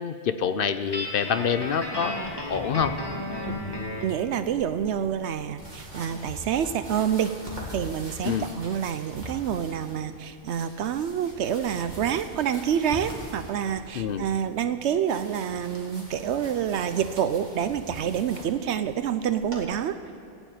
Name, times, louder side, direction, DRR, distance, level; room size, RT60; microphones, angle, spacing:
voice 1, 0.0-2.9 8.2-8.4 13.9-14.3, left 7 dB, 60° left, 11 dB, 0.7 m, -26 dB
sound 1, 0.8-19.6, right 1 dB, 40° right, 2.2 m, -43 dB
Guitar, 0.9-4.2, left 1 dB, 20° left, 1.6 m, -33 dB
voice 2, 4.0-7.3 7.7-20.0, right 9 dB, 75° right, 11 dB, 0.8 m, -27 dB
16.0 x 7.2 x 9.2 m, 2.9 s
omnidirectional pair, 1.2 m